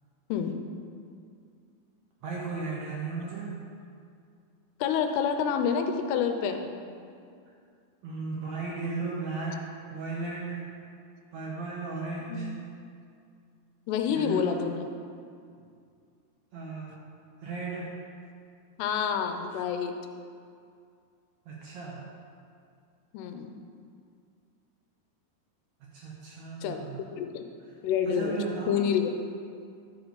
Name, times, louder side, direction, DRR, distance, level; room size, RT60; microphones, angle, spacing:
voice 1, 2.2-3.6 8.0-10.7 11.3-12.7 14.1-14.7 16.5-17.0 17.4-18.0 21.5-22.0 25.9-27.0 28.1-28.8, right 4 dB, 75° right, -4 dB, 1.6 m, -35 dB
voice 2, 4.8-6.7 12.3-12.5 13.9-14.9 18.8-19.9 23.1-23.5 26.6-26.9 27.1-27.5 27.8-28.4 28.7-29.1, left 7 dB, 80° left, 6 dB, 2.7 m, -28 dB
12.0 x 6.9 x 4.0 m, 2.3 s
omnidirectional pair, 4.8 m